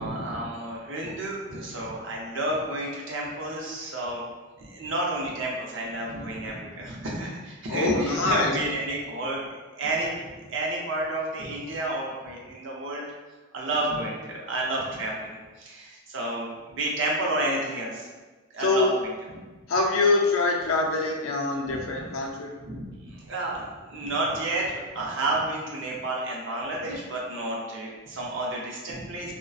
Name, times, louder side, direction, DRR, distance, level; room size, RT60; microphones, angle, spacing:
voice 1, 0.0-4.2 4.6-9.4 9.8-13.1 13.5-18.1 18.5-19.1 21.7-21.8 22.6-29.3, right 1 dB, 60° right, -3 dB, 0.5 m, -31 dB
voice 2, 7.7-8.5 18.6-18.9 19.7-22.5, left 3 dB, 75° left, 0 dB, 0.4 m, -24 dB
2.5 x 2.1 x 2.3 m, 1.2 s
head